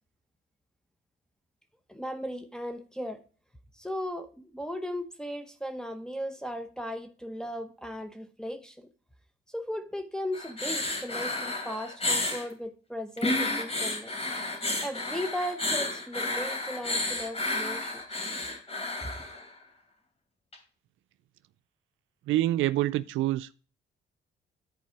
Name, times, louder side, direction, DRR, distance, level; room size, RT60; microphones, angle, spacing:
voice 1, 1.9-3.2 3.8-8.9 9.5-14.1 14.8-18.0 19.0-19.1, equal, 5° left, 0.9 m, -36 dB
sound 1, 10.3-12.5 13.2-19.5 20.5-20.6, left 2 dB, 30° left, 3.3 m, -31 dB
voice 2, 22.3-23.6, right 15 dB, 80° right, 0.4 m, -26 dB
10.0 x 4.7 x 4.5 m
cardioid pair, 90°, 20 cm